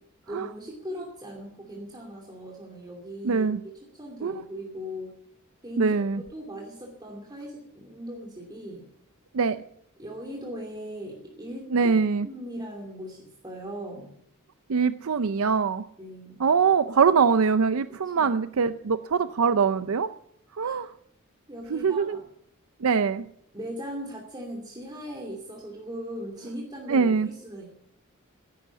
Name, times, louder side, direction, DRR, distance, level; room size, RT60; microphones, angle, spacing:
voice 1, 0.3-5.1 5.6-6.0 6.3-8.9 10.0-11.9 12.2-14.1 16.0-16.4 17.9-18.3 20.6-20.9 21.5-22.2 23.5-27.7, equal, 20° right, -1 dB, 2.7 m, -39 dB
voice 2, 3.2-3.6 4.2-4.3 5.8-6.2 9.3-9.6 11.7-12.3 14.7-15.8 16.4-20.1 20.5-20.9 21.7-22.2 22.8-23.3 26.9-27.3, right 5 dB, 85° right, 12 dB, 0.5 m, -23 dB
16.0 x 11.0 x 7.3 m, 0.72 s
head